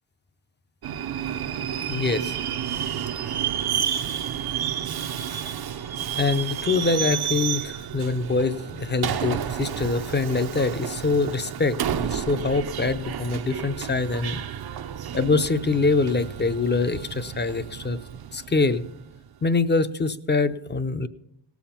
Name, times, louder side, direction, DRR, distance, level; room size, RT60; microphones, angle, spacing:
Subway metro underground, 0.8-19.3, right 9 dB, 60° right, 0.6 m, -31 dB
voice 1, 1.9-2.3 6.2-14.4 15.1-18.0 18.3-18.9 19.4-21.1, left 3 dB, 25° left, 12 dB, 0.6 m, -24 dB
18.0 x 7.1 x 5.8 m, 0.77 s
wide cardioid pair, 125°, 43 cm